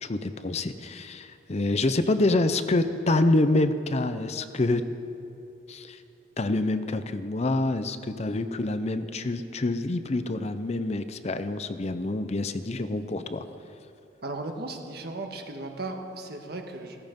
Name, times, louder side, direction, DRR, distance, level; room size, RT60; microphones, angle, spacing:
voice 1, 0.0-4.8 5.7-6.0 6.4-13.4, left 2 dB, 40° left, 10 dB, 0.6 m, -26 dB
voice 2, 14.2-17.0, right 2 dB, 65° right, 3 dB, 1.5 m, -36 dB
16.0 x 14.5 x 5.3 m, 2.9 s
head